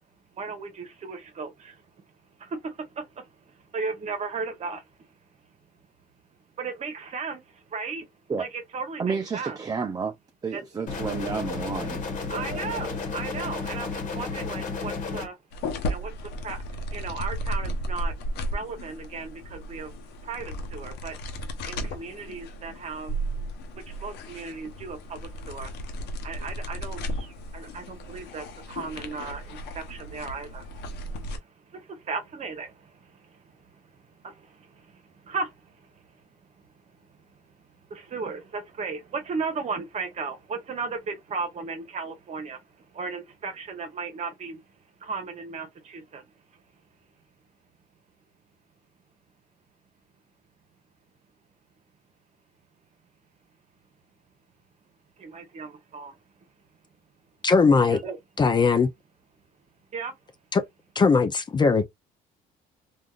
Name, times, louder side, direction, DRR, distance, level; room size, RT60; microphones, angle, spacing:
voice 1, 0.3-1.9 2.4-5.0 6.6-8.1 8.4-9.6 10.5-10.6 12.3-15.4 15.9-18.1 18.5-19.9 20.2-23.2 23.7-25.9 26.2-44.6 45.0-46.2 46.5-46.6 55.2-56.2 57.9-58.2 59.9-60.1, right 4 dB, 40° right, 1.1 m, -36 dB
voice 2, 9.0-10.1 10.4-12.0, right 5 dB, 20° right, 0.5 m, -30 dB
sound 1, 10.9-15.3, left 4 dB, 50° left, 1.3 m, -32 dB
sound 2, 15.5-31.4, equal, 85° left, 0.8 m, -34 dB
voice 3, 57.4-58.0 58.4-58.9 60.5-60.6 61.0-61.8, left 4 dB, 25° left, 0.5 m, -19 dB
3.4 x 2.5 x 2.4 m
cardioid pair, 110°, 17 cm